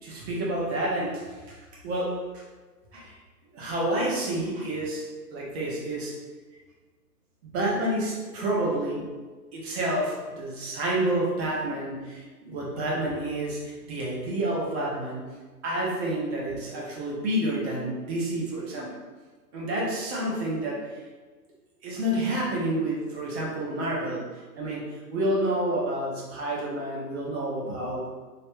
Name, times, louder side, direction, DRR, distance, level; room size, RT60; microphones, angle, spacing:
voice 1, 0.0-1.6 1.8-2.4 2.9-3.1 3.5-5.0 5.3-6.1 7.4-9.1 9.5-15.3 15.6-19.0 19.5-21.0 21.8-24.3 24.6-28.1, right 1 dB, 40° right, -4 dB, 1.1 m, -29 dB
3.2 x 3.1 x 3.1 m, 1.4 s
hypercardioid pair, 140°, 49 cm